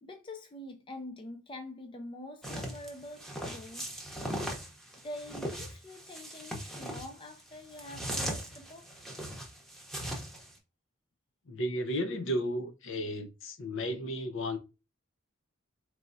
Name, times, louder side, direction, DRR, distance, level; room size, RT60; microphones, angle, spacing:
voice 1, 0.0-3.9 5.0-9.0, left 1 dB, 25° left, 0.4 m, -45 dB
sound 1, 2.4-10.5, equal, ahead, 0.8 m, -39 dB
voice 2, 11.5-14.6, equal, 60° left, 0.7 m, -33 dB
4.3 x 3.3 x 2.5 m
head